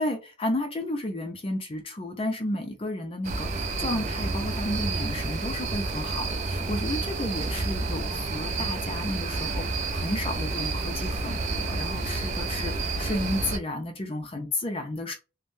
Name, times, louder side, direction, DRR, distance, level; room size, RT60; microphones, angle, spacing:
voice 1, 0.0-15.1, left 1 dB, 30° left, 0.5 m, -32 dB
sound 1, 3.2-13.6, right 3 dB, 35° right, 0.4 m, -30 dB
3.4 x 2.1 x 2.5 m
head